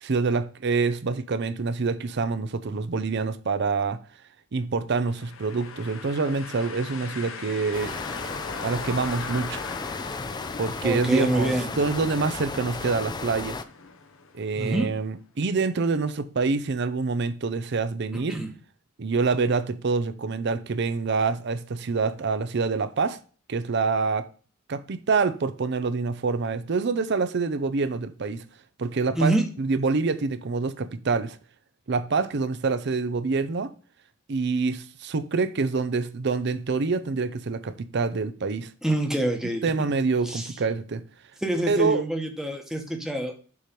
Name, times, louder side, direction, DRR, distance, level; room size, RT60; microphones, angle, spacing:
voice 1, 0.0-4.0 4.5-8.0 8.6-9.6 10.6-13.6 14.3-18.4 19.0-23.2 23.5-24.3 24.7-28.4 28.8-31.4 31.9-33.7 34.3-38.7 39.6-41.0 41.7-42.0, right 4 dB, 55° right, 0.6 m, -26 dB
sound 1, 5.1-14.9, left 5 dB, 85° left, 0.8 m, -40 dB
sound 2, 7.7-13.6, left 3 dB, 20° left, 0.4 m, -34 dB
voice 2, 10.8-11.7 14.5-14.9 18.3-18.5 29.1-29.4 38.8-39.6 40.3-40.5 41.4-43.3, right 1 dB, 5° right, 1.0 m, -25 dB
7.1 x 3.2 x 5.1 m
head